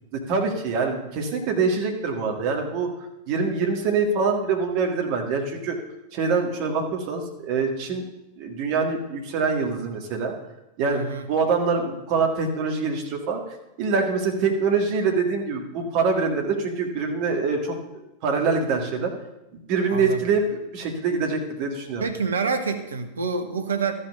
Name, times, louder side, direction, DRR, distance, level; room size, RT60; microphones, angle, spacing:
voice 1, 0.1-2.9 3.3-5.8 6.1-8.0 8.4-10.3 10.8-11.0 11.3-13.4 13.8-17.8 18.2-19.1 19.7-22.0, right 4 dB, 45° right, 3 dB, 1.9 m, -24 dB
voice 2, 10.8-11.3 19.9-20.3 22.0-23.9, right 4 dB, 70° right, 7 dB, 1.1 m, -27 dB
13.0 x 5.6 x 6.9 m, 0.92 s
figure-of-eight pair, 90°, 0 cm